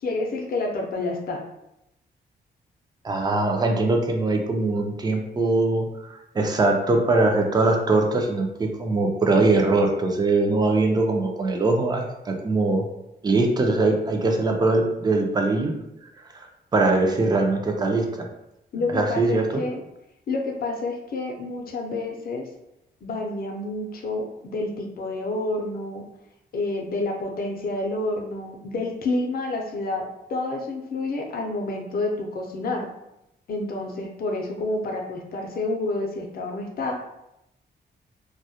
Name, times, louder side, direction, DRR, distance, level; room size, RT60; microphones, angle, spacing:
voice 1, 0.0-1.4 18.7-19.8 20.3-22.5 23.0-26.0 26.5-32.9 33.5-36.9, left 2 dB, 60° left, 2 dB, 0.5 m, -29 dB
voice 2, 3.0-12.9 13.2-15.7 16.3-16.5 16.7-18.3 18.9-19.5, right 2 dB, 25° right, 3 dB, 0.4 m, -22 dB
2.2 x 2.0 x 2.7 m, 0.87 s
cardioid pair, 110°, 18 cm